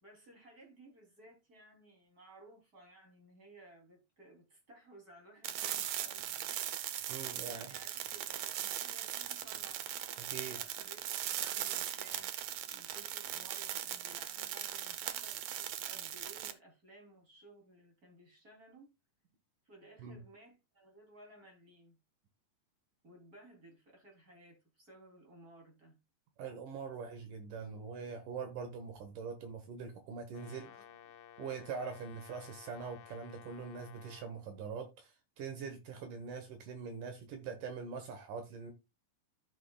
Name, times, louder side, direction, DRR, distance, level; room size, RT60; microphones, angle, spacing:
voice 1, 0.0-6.5 7.4-9.8 10.5-12.3 12.7-18.9 19.6-22.0 23.0-26.0 30.6-31.2, right 2 dB, 25° right, 3.2 m, -58 dB
sound 1, 5.4-16.5, right 11 dB, 90° right, 1.5 m, -39 dB
voice 2, 7.1-7.7 10.2-10.6 20.0-20.2 26.4-30.7 31.4-38.7, right 5 dB, 70° right, 2.6 m, -43 dB
Brass instrument, 30.3-34.4, left 10 dB, 80° left, 2.6 m, -55 dB
14.0 x 6.1 x 2.3 m
omnidirectional pair, 4.1 m